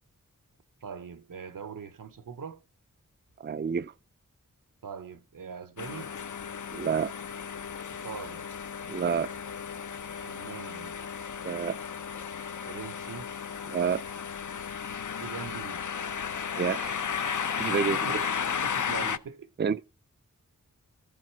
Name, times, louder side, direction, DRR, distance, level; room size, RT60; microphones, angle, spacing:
voice 1, 0.8-2.6 4.8-6.1 7.9-8.4 10.2-11.0 12.7-13.3 15.2-16.0 17.7-18.2 18.6-19.5, right 6 dB, 80° right, 1.0 m, -42 dB
voice 2, 3.4-3.9 6.7-7.1 8.9-9.3 11.4-11.8 13.7-14.0 16.6-17.0 17.6-18.3 19.6-19.8, right 6 dB, 35° right, 0.5 m, -29 dB
sound 1, 5.8-19.2, left 7 dB, 65° left, 0.8 m, -34 dB
14.0 x 7.7 x 4.5 m
cardioid pair, 55°, 32 cm